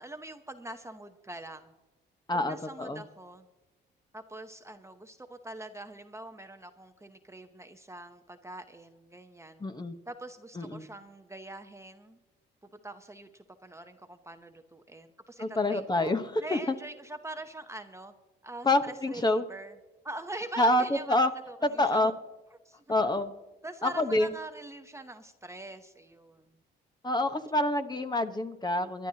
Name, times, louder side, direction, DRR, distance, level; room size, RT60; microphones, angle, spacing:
voice 1, 0.0-1.7 2.3-3.5 4.1-9.6 10.1-12.2 12.6-16.1 16.4-18.1 18.4-19.8 20.0-21.2 21.5-22.1 22.6-22.8 23.6-26.4, right 1 dB, 15° right, 7 dB, 0.8 m, -44 dB
voice 2, 2.3-3.0 9.6-9.9 10.6-10.9 15.4-16.7 18.6-19.4 20.6-21.3 21.6-22.1 22.9-23.3 23.8-24.3 27.0-29.1, left 1 dB, 20° left, 8 dB, 1.1 m, -27 dB
23.0 x 11.0 x 2.8 m, 1.1 s
cardioid pair, 90°, 20 cm